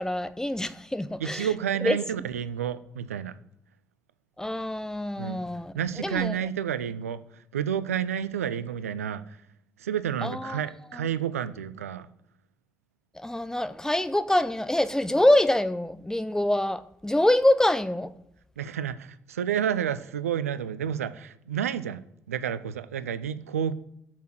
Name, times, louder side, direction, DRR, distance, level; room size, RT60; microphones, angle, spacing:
voice 1, 0.0-1.5 1.8-2.0 4.4-5.7 6.0-6.4 10.2-10.6 13.2-18.1, left 1 dB, 5° left, 0.7 m, -25 dB
voice 2, 1.2-3.3 5.2-5.4 5.7-9.4 9.8-12.1 18.6-22.0 22.3-23.8, right 9 dB, 80° right, 0.4 m, -30 dB
8.3 x 5.9 x 6.1 m
figure-of-eight pair, 45°, 8 cm